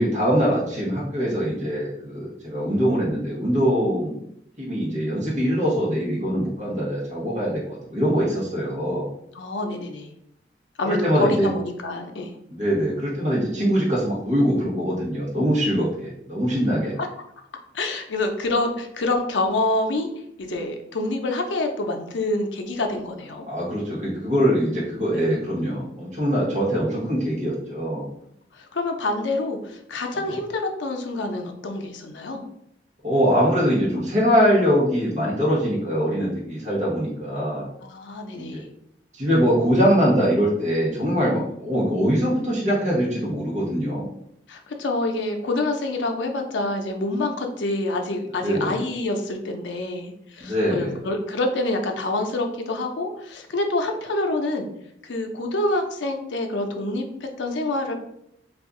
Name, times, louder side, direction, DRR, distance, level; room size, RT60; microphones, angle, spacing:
voice 1, 0.0-4.2 4.6-9.1 10.8-11.5 12.5-16.9 23.5-28.1 30.2-30.3 33.0-37.7 38.4-38.6 39.1-44.1 48.4-48.8 50.4-50.9, equal, 40° right, -6 dB, 1.0 m, -23 dB
voice 2, 9.3-10.1 10.8-12.4 17.0-17.1 17.7-20.1 20.4-23.4 25.1-25.4 28.5-32.4 37.8-38.7 44.5-54.7 55.0-57.9, left 2 dB, 90° left, 4 dB, 0.5 m, -27 dB
2.6 x 2.4 x 3.6 m, 0.74 s
head